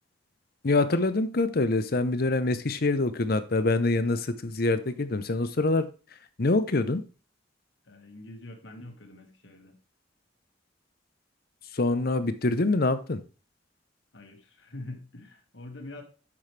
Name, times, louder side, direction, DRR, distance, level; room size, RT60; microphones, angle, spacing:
voice 1, 0.6-5.9 6.4-7.0 11.7-13.2, left 2 dB, 55° left, 12 dB, 0.8 m, -25 dB
voice 2, 7.9-9.8 14.1-16.0, left 2 dB, 75° left, 4 dB, 1.9 m, -44 dB
8.8 x 6.2 x 3.3 m, 0.35 s
head